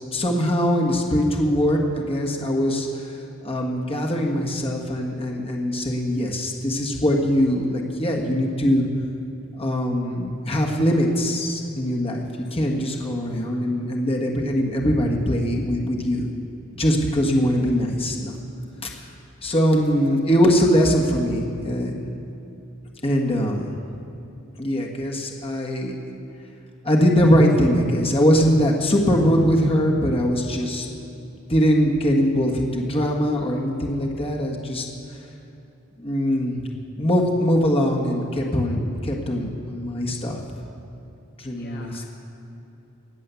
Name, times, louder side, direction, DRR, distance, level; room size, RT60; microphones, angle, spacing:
voice 1, 0.1-2.9 3.4-8.8 9.5-16.3 16.8-18.3 18.8-18.9 19.4-22.0 23.0-23.7 24.6-26.0 26.8-30.9 31.5-34.9 36.0-36.7 37.0-40.4 41.4-42.1, equal, 30° left, -1 dB, 1.5 m, -22 dB
voice 2, 12.7-13.1 41.4-42.0, left 2 dB, 50° left, 1 dB, 1.2 m, -45 dB
19.5 x 7.6 x 7.0 m, 2.8 s
head